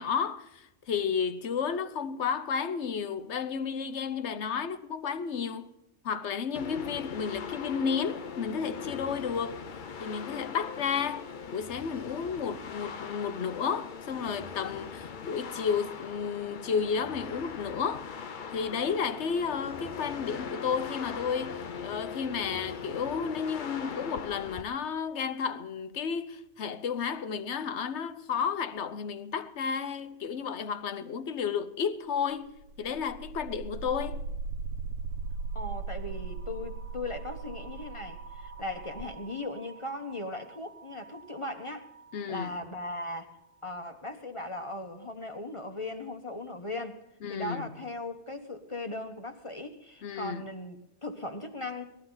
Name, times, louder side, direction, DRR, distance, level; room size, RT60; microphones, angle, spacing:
voice 1, 0.0-5.7 6.0-9.6 10.0-18.1 18.5-34.2 42.1-42.5 47.2-47.7 50.0-50.4, left 6 dB, 70° left, 1.1 m, -32 dB
sound 1, 6.5-24.6, left 6 dB, 50° left, 0.8 m, -40 dB
sound 2, 32.5-42.4, right 4 dB, 90° right, 1.5 m, -39 dB
voice 2, 35.5-41.9 42.3-43.3 43.6-47.0 47.3-51.8, left 2 dB, 25° left, 1.1 m, -38 dB
19.0 x 12.5 x 3.9 m
omnidirectional pair, 1.2 m